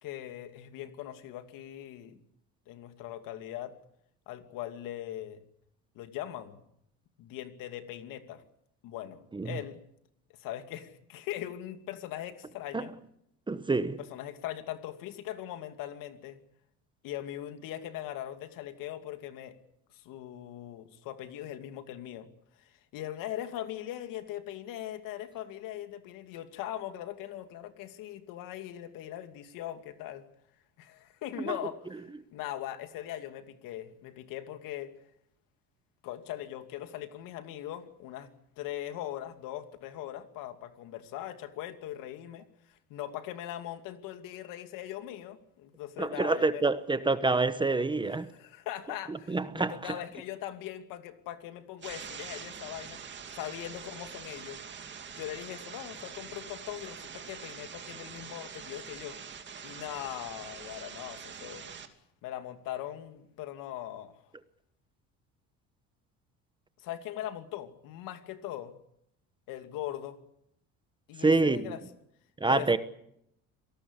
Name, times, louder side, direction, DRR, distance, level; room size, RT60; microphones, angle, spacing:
voice 1, 0.0-2.2 2.7-3.7 4.3-5.4 5.9-6.6 7.2-8.4 8.8-9.8 10.4-12.9 14.0-16.4 17.0-19.6 19.9-22.3 22.6-30.2 30.8-34.9 36.0-38.3 38.6-46.6 48.3-53.0 53.3-54.6 55.2-59.2 59.6-61.7 62.2-64.1 66.8-68.8 69.5-70.2 71.1-71.8 72.5-72.8, left 12 dB, 70° left, 2.7 m, -40 dB
voice 2, 13.5-14.0 31.5-31.6 46.0-48.3 49.1-49.9 71.2-71.7 72.4-72.8, right 3 dB, 15° right, 1.0 m, -27 dB
sound 1, 51.8-61.9, right 7 dB, 35° right, 2.5 m, -44 dB
27.5 x 18.5 x 8.2 m
cardioid pair, 125°, 34 cm